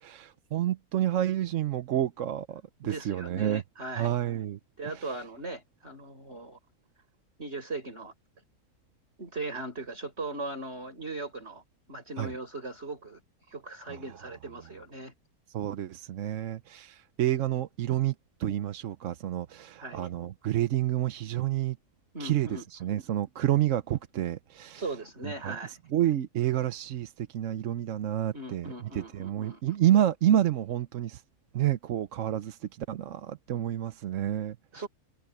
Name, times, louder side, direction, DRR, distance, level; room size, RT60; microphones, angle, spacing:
voice 1, 0.0-3.6 4.0-5.2 12.2-12.3 13.9-14.0 15.5-18.1 18.4-21.8 22.2-24.8 25.2-25.5 25.9-28.7 28.9-31.2 31.5-34.9, right 12 dB, 60° right, 1.0 m, -29 dB
voice 2, 2.8-4.2 4.8-6.6 7.4-8.1 9.2-13.2 13.5-15.1 19.8-20.1 22.1-22.6 24.7-25.8 28.3-29.6 34.7-34.9, right 2 dB, 45° right, 5.7 m, -39 dB
omnidirectional pair, 1.6 m